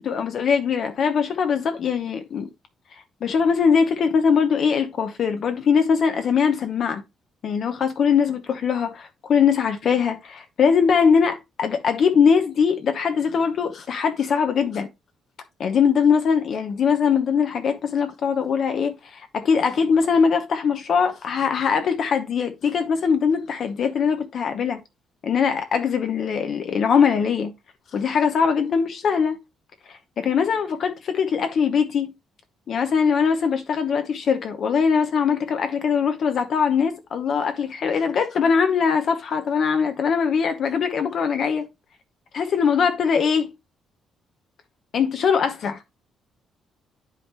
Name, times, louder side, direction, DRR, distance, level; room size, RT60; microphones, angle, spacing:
voice 1, 0.0-2.5 3.2-7.0 7.4-14.9 15.6-24.8 25.2-27.5 27.9-29.4 30.2-32.1 32.7-41.7 42.3-43.5 44.9-45.8, left 6 dB, 45° left, 0.9 m, -21 dB
10.5 x 4.9 x 3.3 m
cardioid pair, 170°, 0 cm